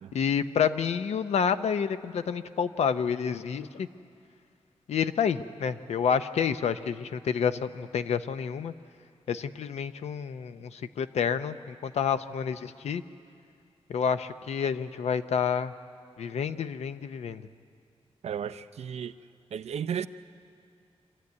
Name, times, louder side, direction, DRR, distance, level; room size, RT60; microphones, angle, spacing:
voice 1, 0.1-3.9 4.9-8.7 9.3-13.0 13.9-15.7 16.2-17.4, left 7 dB, 90° left, 11 dB, 0.7 m, -29 dB
voice 2, 18.2-19.2 19.5-20.1, right 8 dB, 80° right, 12 dB, 0.6 m, -34 dB
26.5 x 13.0 x 9.6 m, 2.4 s
wide cardioid pair, 140°, 11 cm